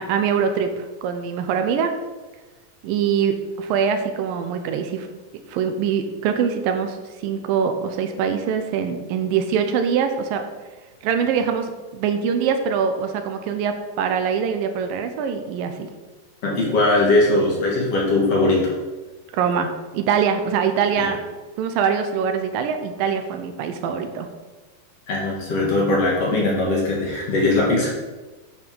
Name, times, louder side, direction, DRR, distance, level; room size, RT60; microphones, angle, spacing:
voice 1, 0.0-1.9 2.8-5.1 5.5-7.0 7.2-10.4 11.0-15.9 19.3-21.2 21.6-24.3, right 7 dB, 80° right, 7 dB, 2.5 m, -23 dB
voice 2, 16.4-18.7 21.0-21.1 25.1-27.9, left 2 dB, 50° left, -3 dB, 2.6 m, -20 dB
10.0 x 5.9 x 5.3 m, 1.2 s
omnidirectional pair, 4.1 m